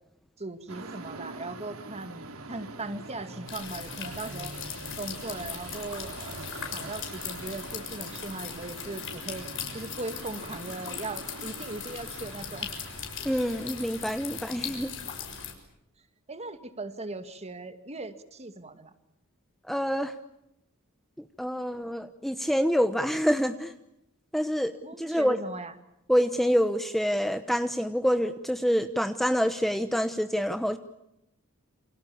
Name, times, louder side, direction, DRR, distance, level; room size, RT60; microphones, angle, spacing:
voice 1, 0.4-4.5 5.0-6.5 6.7-9.5 9.7-12.7 16.3-18.9 24.8-25.7, right 2 dB, 30° right, 9 dB, 2.2 m, -39 dB
sound 1, 0.7-15.5, right 3 dB, 75° right, 3.1 m, -44 dB
sound 2, 3.5-15.5, left 8 dB, 65° left, 6.6 m, -39 dB
voice 2, 13.2-14.9 19.7-20.1 21.4-23.7 24.3-24.7 25.0-25.4 26.1-30.8, equal, ahead, 9 dB, 1.0 m, -26 dB
29.5 x 27.5 x 7.2 m, 0.83 s
head